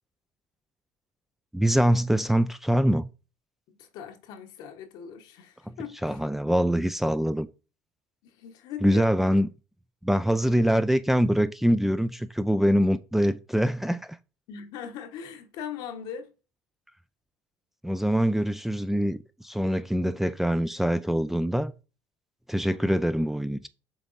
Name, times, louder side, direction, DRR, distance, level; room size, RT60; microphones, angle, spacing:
voice 1, 1.5-3.1 5.7-5.8 6.0-7.5 8.8-9.5 10.0-14.2 17.8-21.7 22.5-23.7, equal, 5° right, 0.4 m, -24 dB
voice 2, 3.7-6.2 8.2-9.2 14.5-16.3 22.6-23.1, left 7 dB, 75° left, 1.1 m, -40 dB
7.0 x 3.5 x 4.0 m
supercardioid pair, 95°, 7 cm